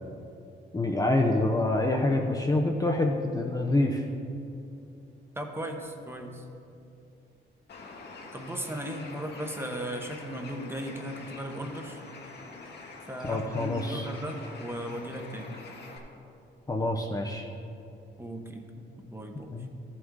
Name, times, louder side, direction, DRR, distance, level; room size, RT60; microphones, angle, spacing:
voice 1, 0.7-4.0 13.2-14.1 16.7-17.5 19.5-19.7, left 2 dB, 20° left, 1 dB, 0.6 m, -26 dB
voice 2, 5.4-6.4 8.3-12.0 13.1-15.6 18.2-18.9 19.1-19.5, right 1 dB, 10° right, 4 dB, 1.0 m, -37 dB
Bird, 7.7-16.0, left 3 dB, 60° left, 1.4 m, -45 dB
13.0 x 6.2 x 3.8 m, 2.7 s
cardioid pair, 90°, 20 cm